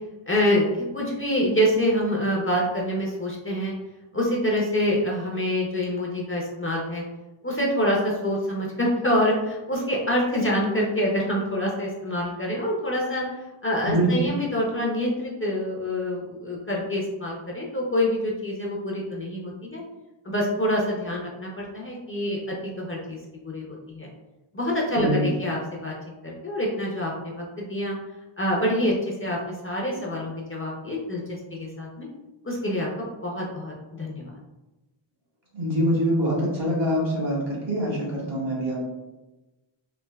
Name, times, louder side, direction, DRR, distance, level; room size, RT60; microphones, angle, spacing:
voice 1, 0.3-0.7 0.9-3.7 4.1-7.0 7.4-13.2 13.6-19.8 20.2-23.2 23.4-24.1 24.5-25.9 26.2-27.9 28.4-31.2 31.5-32.1 32.4-34.3, equal, 25° left, -2 dB, 0.5 m, -26 dB
voice 2, 35.5-38.8, equal, 65° right, -4 dB, 1.4 m, -24 dB
3.3 x 2.5 x 2.2 m, 1.1 s
wide cardioid pair, 110°, 49 cm